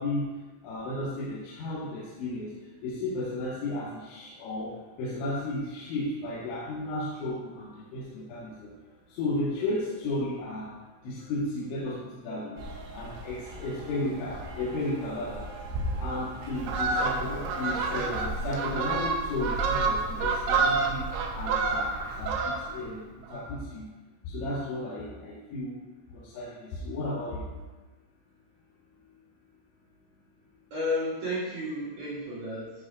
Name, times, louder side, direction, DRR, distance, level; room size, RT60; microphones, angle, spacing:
voice 1, 0.0-12.6 12.9-15.7 16.0-21.1 21.3-23.9 24.2-25.8 26.1-27.6, left 1 dB, 75° left, -8 dB, 3.5 m, -34 dB
sound 1, 12.6-18.5, right 1 dB, 65° right, 3.1 m, -38 dB
Fowl, 16.5-22.9 23.2-23.5, right 4 dB, 85° right, 2.3 m, -28 dB
voice 2, 30.7-32.8, left 1 dB, 50° right, -10 dB, 3.1 m, -32 dB
13.5 x 6.1 x 2.5 m, 1.2 s
omnidirectional pair, 5.9 m